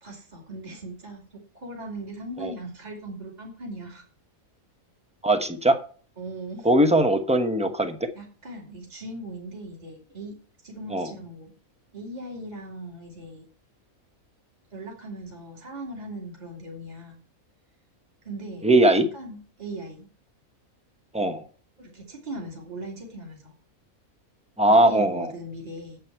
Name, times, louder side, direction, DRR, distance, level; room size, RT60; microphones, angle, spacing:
voice 1, 0.0-4.0 6.2-6.7 8.1-10.4 10.6-11.5 11.9-13.4 14.7-17.2 18.2-18.7 19.1-20.1 21.8-23.5 24.7-26.0, right 1 dB, 30° right, -2 dB, 2.7 m, -39 dB
voice 2, 5.2-5.8 6.6-8.0 10.9-11.1 18.6-19.1 21.1-21.4 24.6-25.3, right 1 dB, 5° right, 7 dB, 0.8 m, -20 dB
9.4 x 7.9 x 4.5 m, 0.42 s
omnidirectional pair, 1.5 m